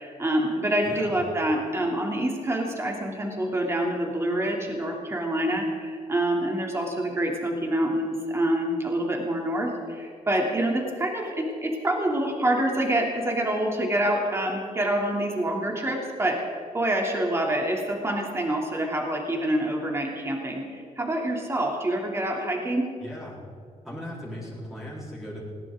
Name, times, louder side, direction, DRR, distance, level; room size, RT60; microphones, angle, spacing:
voice 1, 0.0-22.9, right 1 dB, 20° right, 0 dB, 3.0 m, -26 dB
voice 2, 0.8-1.2 23.0-23.4 23.8-25.4, equal, 5° right, -7 dB, 4.3 m, -37 dB
20.0 x 17.5 x 3.9 m, 2.3 s
cardioid pair, 125°, 13 cm